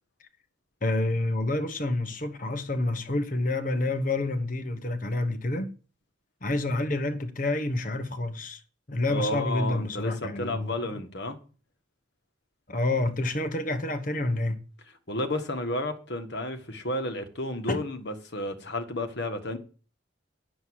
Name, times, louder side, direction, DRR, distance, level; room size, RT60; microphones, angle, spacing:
voice 1, 0.8-5.7 6.4-8.6 8.9-11.0 12.7-14.6 17.7-17.8, left 2 dB, 45° left, 1.2 m, -28 dB
voice 2, 9.1-11.4 15.1-19.6, left 1 dB, 60° left, 1.7 m, -32 dB
9.2 x 7.3 x 6.3 m
head